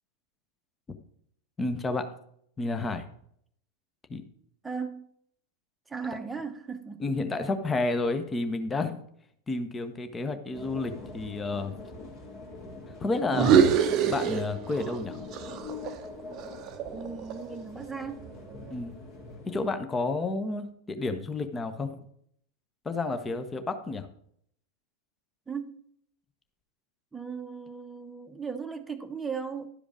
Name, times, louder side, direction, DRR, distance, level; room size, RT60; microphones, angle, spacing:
voice 1, 1.6-2.0 2.6-3.0 4.1-4.2 7.0-9.0 9.5-11.7 13.0-13.5 14.1-15.2 18.7-19.0 19.5-22.0 22.8-24.1, left 3 dB, 15° left, 1.0 m, -30 dB
voice 2, 4.6-5.1 5.9-7.0 16.9-18.3 25.5-25.8 27.1-29.7, right 5 dB, 10° right, 0.9 m, -37 dB
sound 1, 10.5-19.7, left 3 dB, 40° left, 2.3 m, -44 dB
sound 2, 13.3-15.0 15.3-17.5, right 8 dB, 35° right, 0.7 m, -25 dB
11.5 x 5.1 x 5.0 m
figure-of-eight pair, 90°, 0 cm